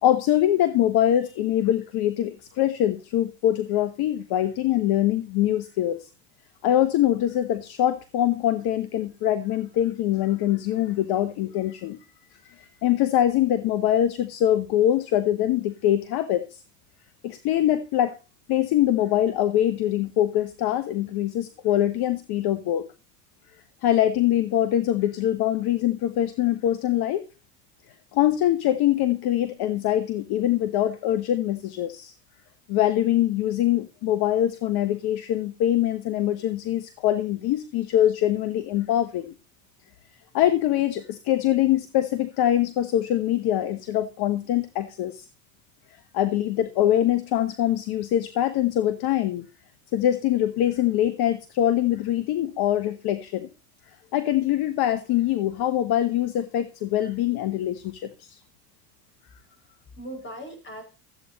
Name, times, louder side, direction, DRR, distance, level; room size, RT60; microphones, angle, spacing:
voice 1, 0.0-6.1 6.6-12.0 12.4-16.6 17.2-18.1 18.5-22.9 23.8-27.3 28.1-32.1 32.7-39.4 40.3-45.3 46.1-49.4 49.9-53.5 54.1-58.4, left 12 dB, 50° left, 13 dB, 1.2 m, -23 dB
voice 2, 59.4-60.8, right 1 dB, 25° left, 6 dB, 5.6 m, -40 dB
13.5 x 8.6 x 4.1 m, 0.32 s
hypercardioid pair, 90°, 48 cm